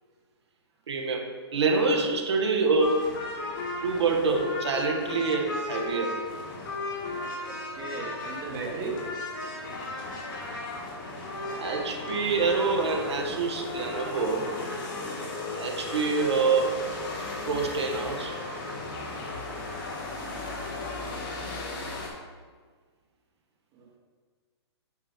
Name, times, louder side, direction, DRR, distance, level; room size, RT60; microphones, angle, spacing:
voice 1, 0.9-3.1 3.8-6.2 11.6-14.5 15.5-16.9 17.4-18.3, right 4 dB, 75° right, 1 dB, 1.2 m, -26 dB
sound 1, 2.8-22.1, left 2 dB, 50° left, 1.9 m, -35 dB
voice 2, 7.5-8.9 23.7-24.0, right 4 dB, 25° right, -2 dB, 1.1 m, -36 dB
8.4 x 2.9 x 6.3 m, 1.5 s
hypercardioid pair, 150°, 14 cm